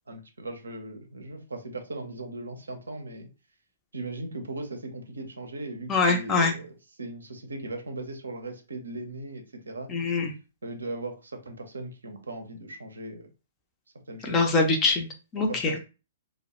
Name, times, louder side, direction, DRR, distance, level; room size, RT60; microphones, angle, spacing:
voice 1, 0.1-3.3 3.9-6.7 7.0-9.9 10.6-13.3 14.1-14.4 15.4-15.8, right 2 dB, 75° right, 5 dB, 0.5 m, -38 dB
voice 2, 5.9-6.5 9.9-10.3 14.2-15.1 15.3-15.8, left 3 dB, 20° left, 3 dB, 0.5 m, -23 dB
2.2 x 2.0 x 2.8 m, 0.31 s
figure-of-eight pair, 115°, 0 cm